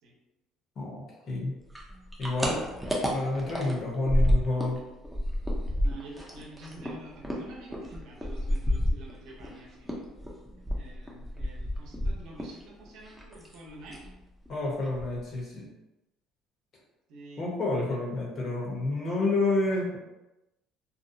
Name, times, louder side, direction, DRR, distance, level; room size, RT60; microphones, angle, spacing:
voice 1, 0.8-1.6 2.2-2.6 3.1-4.8 14.5-15.7 17.4-20.0, left 2 dB, 40° left, -3 dB, 0.8 m, -29 dB
sound 1, 1.7-4.8 5.0-9.5 9.9-12.6 12.9-13.6 13.9-14.1 14.5-14.6 14.8-15.4, equal, ahead, 0.5 m, -29 dB
voice 2, 5.8-10.0 10.5-14.0 17.1-17.8, right 2 dB, 75° right, -2 dB, 0.8 m, -48 dB
2.6 x 2.1 x 2.6 m, 0.98 s
cardioid pair, 135°, 0 cm